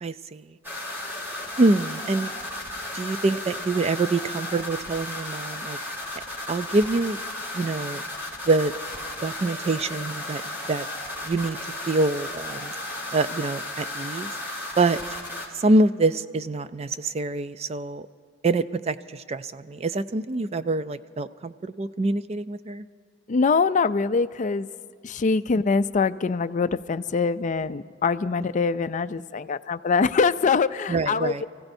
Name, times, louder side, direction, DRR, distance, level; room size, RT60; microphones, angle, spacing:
voice 1, 0.0-0.5 1.6-2.3 2.9-5.8 6.5-7.2 7.5-8.0 8.5-8.7 9.2-10.9 11.2-11.6 11.9-12.7 13.1-14.3 14.8-15.0 15.5-18.1 18.4-22.8 30.9-31.4, right 2 dB, 35° right, 13 dB, 0.4 m, -25 dB
sound 1, 0.6-15.5, left 1 dB, 10° right, 2.9 m, -34 dB
voice 2, 23.3-24.7 25.0-31.4, left 4 dB, 40° left, 12 dB, 0.4 m, -23 dB
29.0 x 16.0 x 2.7 m, 2.3 s
head